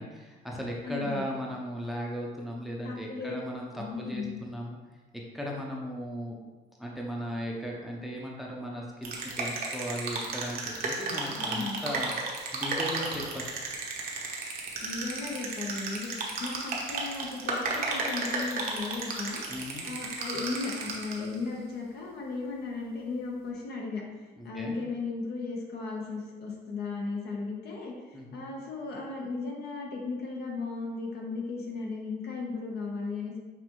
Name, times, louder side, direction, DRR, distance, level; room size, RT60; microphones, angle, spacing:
voice 1, 0.0-4.8 5.1-6.4 6.8-12.1 12.5-13.5 19.5-19.9 24.4-24.8 28.1-28.4, equal, ahead, -2 dB, 0.7 m, -37 dB
voice 2, 0.8-1.3 2.8-3.4 3.7-4.4 11.3-11.9 14.8-16.1 16.4-19.4 19.8-24.0 24.4-33.4, left 4 dB, 70° left, -1 dB, 1.0 m, -36 dB
sound 1, 9.0-21.3, right 3 dB, 55° right, 0.9 m, -34 dB
6.0 x 2.6 x 3.0 m, 1.2 s
cardioid pair, 105°, 17 cm